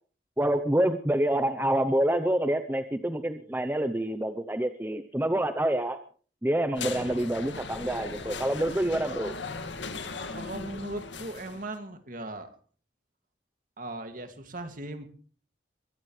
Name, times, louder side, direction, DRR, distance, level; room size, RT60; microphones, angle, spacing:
voice 1, 0.4-6.0 6.4-9.4, right 1 dB, 10° right, 10 dB, 0.7 m, -27 dB
sound 1, 6.7-11.7, left 4 dB, 85° left, 2.1 m, -38 dB
voice 2, 6.8-7.2 10.3-12.5 13.8-15.1, right 1 dB, 50° right, 7 dB, 2.3 m, -38 dB
23.0 x 17.5 x 3.2 m, 0.42 s
head